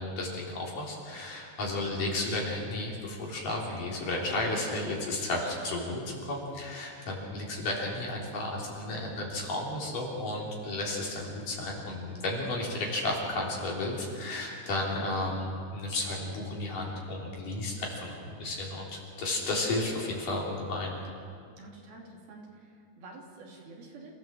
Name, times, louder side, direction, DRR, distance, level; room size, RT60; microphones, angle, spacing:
voice 1, 0.0-20.9, left 2 dB, 50° left, -3 dB, 4.9 m, -33 dB
voice 2, 21.6-24.1, right 3 dB, 60° right, -1 dB, 4.5 m, -49 dB
28.0 x 15.5 x 7.5 m, 2.3 s
omnidirectional pair, 5.0 m